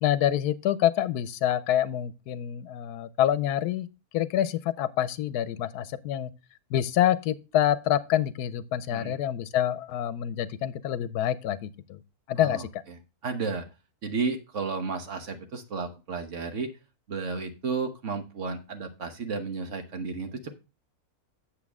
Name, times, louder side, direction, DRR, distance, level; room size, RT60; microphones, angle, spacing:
voice 1, 0.0-3.9 4.1-6.3 6.7-12.0 12.3-12.8, left 11 dB, 85° left, 1.2 m, -27 dB
voice 2, 12.4-13.7 14.0-16.7 17.1-20.5, right 4 dB, 55° right, 1.4 m, -33 dB
8.4 x 7.4 x 3.5 m
omnidirectional pair, 1.6 m